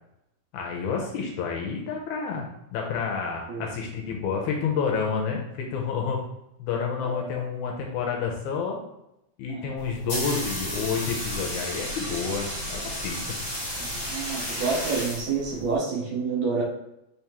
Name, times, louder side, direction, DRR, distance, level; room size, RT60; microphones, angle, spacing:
voice 1, 0.5-6.3 6.6-8.8 9.4-13.3, left 5 dB, 80° left, 0 dB, 1.9 m, -29 dB
voice 2, 7.0-7.4 9.5-9.7 13.8-16.6, right 4 dB, 70° right, -3 dB, 2.3 m, -29 dB
sound 1, 9.8-15.8, equal, 35° left, 1.8 m, -33 dB
5.3 x 3.5 x 2.9 m, 0.85 s
omnidirectional pair, 3.7 m